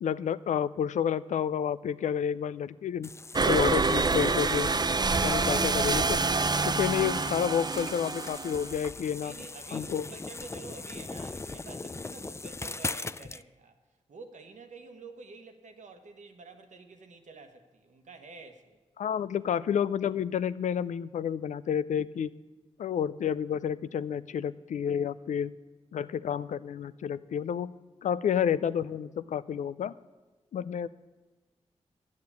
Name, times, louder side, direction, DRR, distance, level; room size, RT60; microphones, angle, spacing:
voice 1, 0.0-3.1 3.4-4.7 5.2-6.2 6.6-9.3 9.7-10.1 19.0-22.3 22.8-25.5 25.9-27.7 28.0-29.9 30.5-30.9, left 8 dB, 90° left, 16 dB, 0.4 m, -30 dB
sound 1, 3.0-13.4, left 3 dB, 20° left, 0.4 m, -40 dB
sound 2, 3.3-8.9, right 4 dB, 35° right, 0.5 m, -27 dB
voice 2, 9.2-13.8 14.1-18.8, right 3 dB, 85° right, 6 dB, 1.2 m, -49 dB
10.5 x 7.7 x 8.4 m, 1.2 s
cardioid pair, 40°, 12 cm